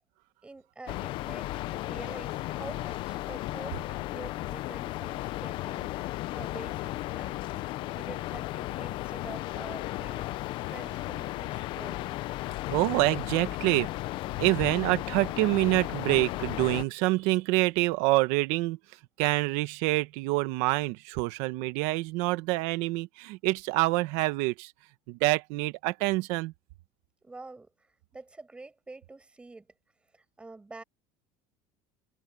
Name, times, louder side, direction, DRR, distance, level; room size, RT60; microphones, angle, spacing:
voice 1, 0.4-10.3 10.7-12.2 27.2-29.7 30.1-30.8, right 3 dB, 10° right, 6.9 m, -47 dB
sound 1, 0.9-16.8, left 17 dB, 40° left, 0.6 m, -35 dB
sound 2, 5.8-15.4, left 21 dB, 75° left, 2.8 m, -50 dB
voice 2, 12.7-13.9 14.4-18.8 19.2-24.7 25.1-26.5, right 21 dB, 60° right, 1.3 m, -26 dB
cardioid pair, 165°, 12 cm